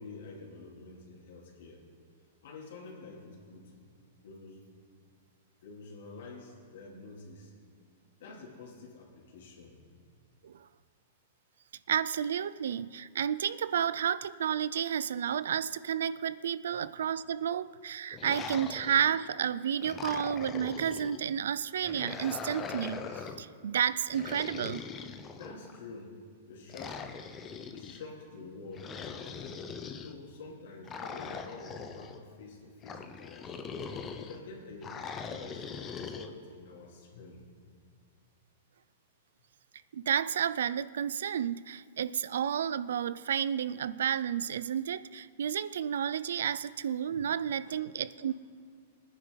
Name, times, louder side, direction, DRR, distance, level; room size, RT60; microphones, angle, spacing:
voice 1, 0.0-1.9 2.4-3.9 4.2-4.7 5.6-7.5 8.2-9.8 16.7-16.8 25.4-26.2 26.5-27.1 27.7-29.6 29.9-33.7 34.2-35.0 35.3-37.5 47.6-47.7 48.2-48.3, left 3 dB, 70° left, -1 dB, 3.0 m, -48 dB
voice 2, 11.9-24.9 39.9-48.3, right 8 dB, 85° right, 17 dB, 0.4 m, -31 dB
sound 1, 18.1-19.3 19.8-21.2 21.8-23.5 24.1-25.8 26.7-28.0 28.7-30.1 30.9-32.2 32.8-34.4 34.8-36.3, left 6 dB, 20° left, 0.7 m, -41 dB
20.5 x 9.9 x 4.0 m, 2.2 s
supercardioid pair, 160°, 0 cm